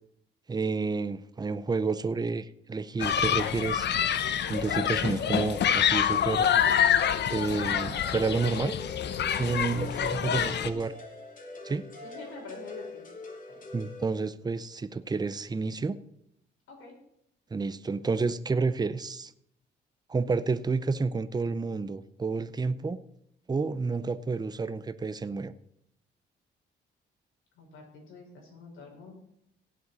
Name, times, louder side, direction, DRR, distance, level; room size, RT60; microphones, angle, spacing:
voice 1, 0.5-4.1 4.5-6.5 7.3-8.7 9.4-10.9 11.6-11.8 13.7-16.0 17.5-19.3 20.1-23.0 23.5-25.5, right 4 dB, 20° right, 13 dB, 0.7 m, -30 dB
Human group actions, 3.0-10.7, left 9 dB, 60° left, 0.8 m, -26 dB
sound 1, 7.9-14.1, left 2 dB, 40° left, 2.6 m, -44 dB
voice 2, 9.3-10.8 12.0-13.1 13.5-13.7 16.7-17.0 27.6-29.1, left 4 dB, 80° left, 0 dB, 5.2 m, -46 dB
17.5 x 7.7 x 4.2 m, 0.73 s
cardioid pair, 90°, 20 cm